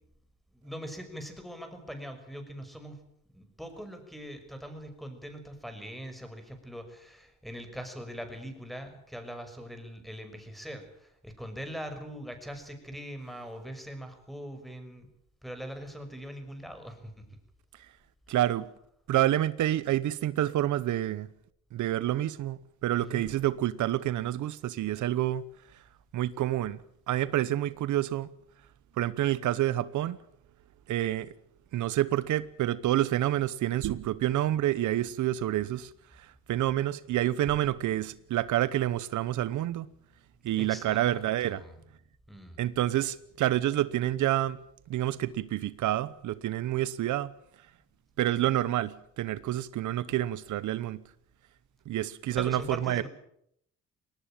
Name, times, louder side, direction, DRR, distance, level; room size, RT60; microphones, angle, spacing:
voice 1, 0.5-3.0 3.3-15.1 15.4-17.2 18.3-18.4 22.9-23.3 40.6-41.7 42.3-42.6 52.3-53.1, equal, ahead, 6.0 m, -42 dB
voice 2, 18.3-18.7 19.1-21.3 21.7-25.4 26.1-26.8 27.1-28.3 29.0-30.2 30.9-31.3 31.7-39.9 40.4-41.6 42.6-44.6 44.9-47.3 48.2-51.0 51.9-53.1, right 13 dB, 75° right, 0.9 m, -28 dB
20.5 x 18.5 x 9.0 m
cardioid pair, 90°, 30 cm